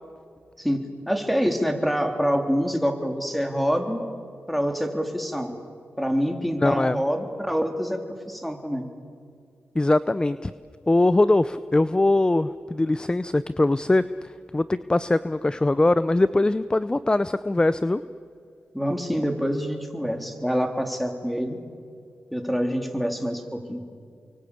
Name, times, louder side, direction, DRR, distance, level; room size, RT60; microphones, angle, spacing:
voice 1, 0.6-4.1 4.5-5.5 6.0-8.9 18.7-21.6 22.3-23.8, equal, ahead, 5 dB, 3.6 m, -26 dB
voice 2, 6.6-7.0 9.7-10.5 10.9-18.0, left 2 dB, 20° left, 14 dB, 0.7 m, -22 dB
29.0 x 24.0 x 8.6 m, 2.2 s
cardioid pair, 65°, 4 cm